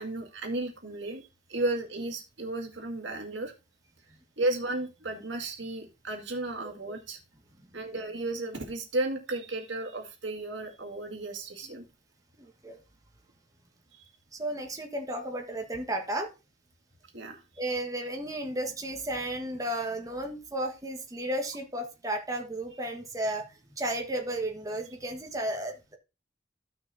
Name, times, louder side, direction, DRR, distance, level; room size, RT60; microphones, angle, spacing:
voice 1, 0.0-3.5 4.4-7.2 7.7-11.8 14.0-14.1 17.1-17.4, right 2 dB, 75° right, 2 dB, 1.9 m, -34 dB
voice 2, 12.4-12.8 14.3-16.3 17.6-26.0, right 1 dB, 20° right, 3 dB, 1.4 m, -33 dB
14.5 x 6.2 x 2.7 m, 0.28 s
head